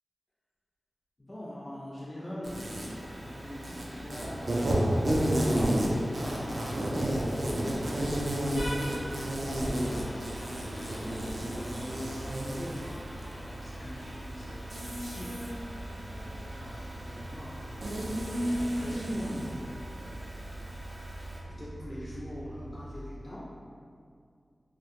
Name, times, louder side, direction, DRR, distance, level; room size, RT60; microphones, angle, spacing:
voice 1, 1.2-18.3 18.7-20.5 21.6-23.5, left 1 dB, 30° left, -7 dB, 0.3 m, -45 dB
Insect, 2.4-21.4, right 1 dB, 60° right, 0.4 m, -32 dB
Vehicle horn car horn honking, 2.6-19.4, equal, 75° left, 0.6 m, -48 dB
sound 1, 7.0-22.9, right 1 dB, 35° right, 0.7 m, -45 dB
2.1 x 2.1 x 2.9 m, 2.3 s
wide cardioid pair, 90°, 0 cm